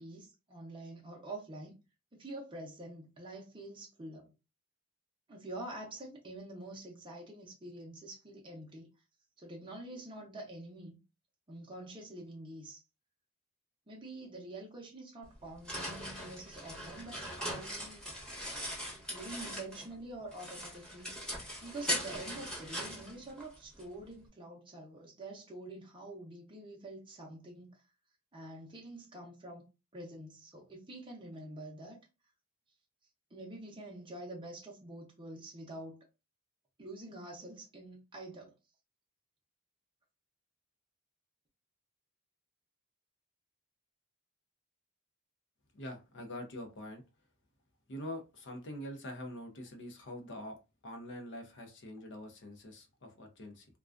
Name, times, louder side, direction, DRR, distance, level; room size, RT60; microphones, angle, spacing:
voice 1, 0.0-1.7 2.1-4.3 5.3-8.9 9.4-11.0 11.5-12.8 13.9-18.0 19.1-21.1 21.6-27.9 28.3-29.6 29.9-32.0 33.3-36.1 36.8-38.5, right 2 dB, 25° right, 0.6 m, -46 dB
sound 1, 15.2-20.0 20.3-23.8, equal, 5° left, 0.9 m, -40 dB
voice 2, 45.7-47.0 47.9-50.6 50.8-53.7, left 1 dB, 55° left, 0.6 m, -44 dB
2.3 x 2.2 x 2.4 m
head